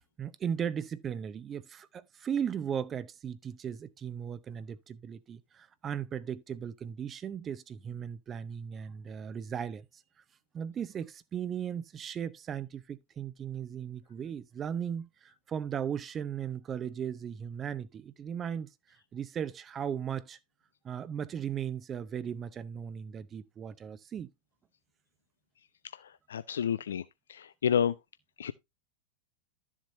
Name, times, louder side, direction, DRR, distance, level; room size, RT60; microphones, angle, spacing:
voice 1, 0.2-10.0 10.5-18.7 19.1-20.4 20.8-24.3, right 8 dB, 25° right, 0.7 m, -37 dB
voice 2, 25.9-27.0 27.3-27.9 28.4-28.5, left 8 dB, 65° left, 0.4 m, -30 dB
12.5 x 7.3 x 2.7 m
figure-of-eight pair, 90°, 0 cm